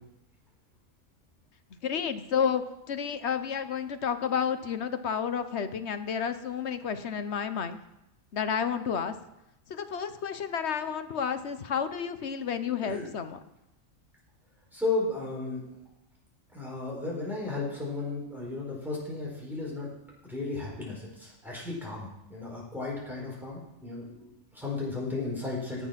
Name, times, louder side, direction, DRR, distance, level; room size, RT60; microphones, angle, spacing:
voice 1, 1.8-2.6 2.9-7.8 8.3-9.2 9.7-13.4, left 7 dB, 60° left, 10 dB, 1.1 m, -31 dB
voice 2, 14.7-15.6 16.5-19.9 20.2-25.9, left 3 dB, ahead, -4 dB, 4.4 m, -34 dB
18.0 x 7.1 x 5.9 m, 0.89 s
omnidirectional pair, 1.4 m